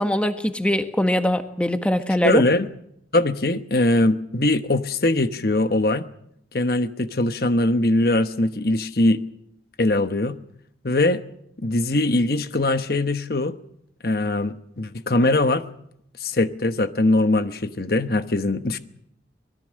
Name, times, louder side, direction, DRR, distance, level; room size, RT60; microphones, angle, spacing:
voice 1, 0.0-2.4, left 1 dB, 5° left, 7 dB, 1.5 m, -22 dB
voice 2, 2.2-2.7 3.1-6.0 6.5-9.2 9.8-10.4 10.8-11.2 11.6-13.5 14.0-15.6 16.2-18.8, left 2 dB, 55° left, 10 dB, 1.1 m, -21 dB
25.0 x 21.0 x 6.4 m, 0.73 s
head